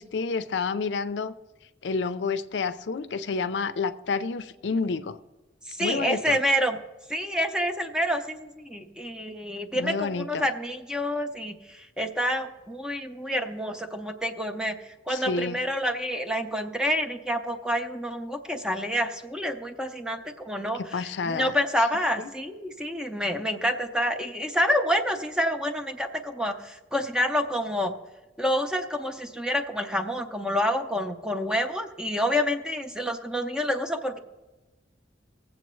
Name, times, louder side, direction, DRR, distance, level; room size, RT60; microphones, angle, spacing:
voice 1, 0.0-1.3 1.8-5.2 5.8-6.4 9.7-10.4 15.1-15.6 20.9-21.5, left 4 dB, 80° left, 12 dB, 0.5 m, -29 dB
voice 2, 5.7-6.8 7.1-27.9 28.4-34.2, equal, 5° right, 6 dB, 0.6 m, -28 dB
19.0 x 7.6 x 3.1 m, 1.2 s
head